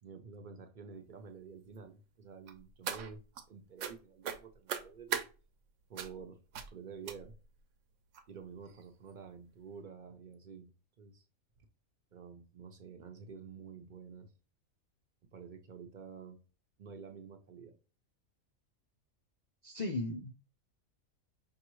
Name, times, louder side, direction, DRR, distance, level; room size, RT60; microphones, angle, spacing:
voice 1, 0.0-3.2 3.5-5.3 5.9-7.3 8.3-10.7 11.0-11.2 12.1-14.3 15.3-16.4 16.8-17.8, right 6 dB, 50° right, 0.6 m, -49 dB
sound 1, 2.5-3.4 3.8-4.0 4.2-5.3 6.0-6.2 6.5-6.7 7.1-7.5 8.1-8.2 8.7-8.8 9.1-9.2, right 8 dB, 70° right, 0.9 m, -39 dB
voice 2, 19.6-20.3, left 2 dB, 75° left, 0.3 m, -36 dB
5.4 x 2.4 x 3.0 m
omnidirectional pair, 1.4 m